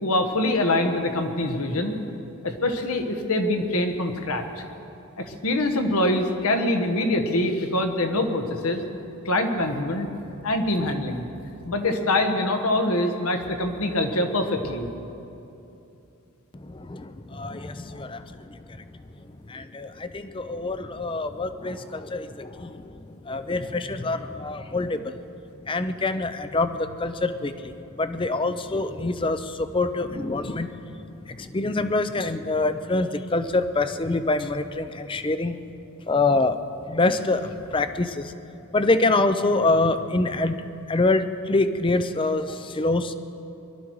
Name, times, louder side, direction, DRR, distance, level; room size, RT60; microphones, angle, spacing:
voice 1, 0.0-1.9 2.4-4.4 5.2-8.8 9.2-10.1 10.4-11.2 11.6-14.9, left 1 dB, 75° left, 5 dB, 1.4 m, -24 dB
voice 2, 16.5-18.8 19.5-25.2 25.7-35.6 36.1-36.6 36.9-38.3 38.7-40.6 40.9-43.1, left 2 dB, 20° left, 10 dB, 0.5 m, -25 dB
22.0 x 12.5 x 4.8 m, 2.8 s
head